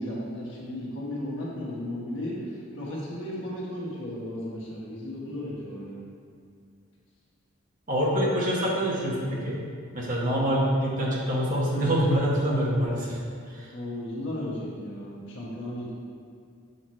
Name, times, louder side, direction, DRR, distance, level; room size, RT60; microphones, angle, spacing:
voice 1, 0.0-6.1 13.7-15.9, left 1 dB, 65° left, -6 dB, 1.3 m, -35 dB
voice 2, 7.9-9.6 9.9-13.2 13.5-13.7, equal, 40° right, -5 dB, 1.3 m, -25 dB
6.5 x 6.0 x 3.1 m, 2.2 s
head